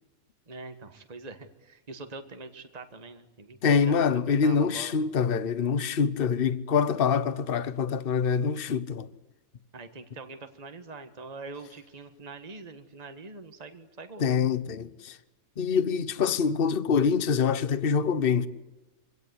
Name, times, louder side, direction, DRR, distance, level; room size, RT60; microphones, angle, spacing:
voice 1, 0.5-4.9 9.7-14.2, right 3 dB, 30° right, 1.7 m, -44 dB
voice 2, 3.6-9.1 14.2-15.2 15.6-18.5, left 6 dB, 45° left, 1.1 m, -25 dB
25.5 x 17.5 x 9.7 m
omnidirectional pair, 1.5 m